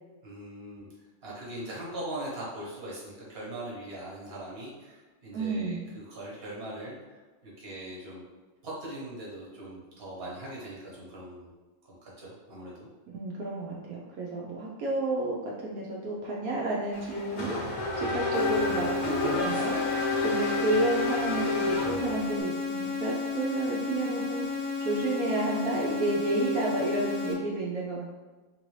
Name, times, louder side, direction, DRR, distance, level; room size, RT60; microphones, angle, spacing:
voice 1, 0.2-0.9 1.2-8.2 8.6-11.5 11.8-12.9 18.0-18.2 20.1-20.3, right 1 dB, 45° right, -6 dB, 1.3 m, -41 dB
voice 2, 5.3-5.9 13.1-17.7 18.0-28.1, right 2 dB, 80° right, -4 dB, 1.0 m, -31 dB
Race car auto racing / Accelerating revving vroom, 16.9-22.4, left 3 dB, 45° left, 0.6 m, -31 dB
sound 1, 17.9-21.9, left 1 dB, 70° left, 1.1 m, -48 dB
sound 2, 18.3-27.3, left 5 dB, 90° left, 1.1 m, -33 dB
3.5 x 2.6 x 3.1 m, 1.2 s
omnidirectional pair, 1.5 m